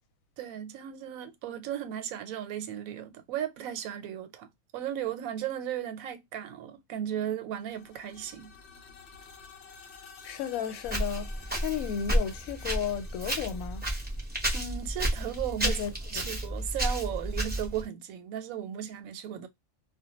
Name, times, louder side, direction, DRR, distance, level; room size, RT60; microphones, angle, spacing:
voice 1, 0.4-4.5 4.7-8.5 14.5-15.8 16.1-19.5, right 10 dB, 90° right, 1.0 m, -35 dB
sound 1, 7.5-15.4, left 5 dB, 65° left, 0.8 m, -52 dB
voice 2, 10.2-11.3 11.6-13.9 15.6-15.9, left 8 dB, 85° left, 1.0 m, -33 dB
Walk footsteps, 10.8-17.8, right 1 dB, 10° right, 0.5 m, -31 dB
2.2 x 2.1 x 2.8 m
omnidirectional pair, 1.4 m